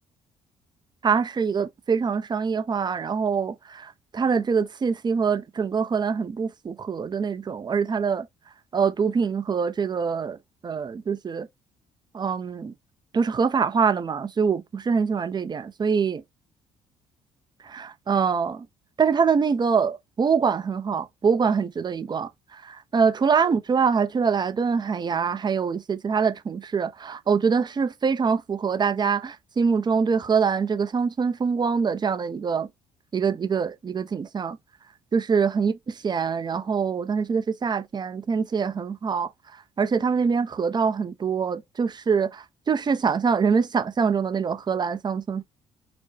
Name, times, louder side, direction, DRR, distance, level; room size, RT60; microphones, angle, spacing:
voice 1, 1.0-8.3 8.7-10.4 10.6-11.5 12.1-12.7 13.1-16.2 17.6-18.7 19.0-32.7 33.1-34.6 35.1-39.3 39.8-45.4, right 6 dB, 30° right, 0.7 m, -24 dB
4.3 x 2.2 x 2.8 m
figure-of-eight pair, 45°, 15 cm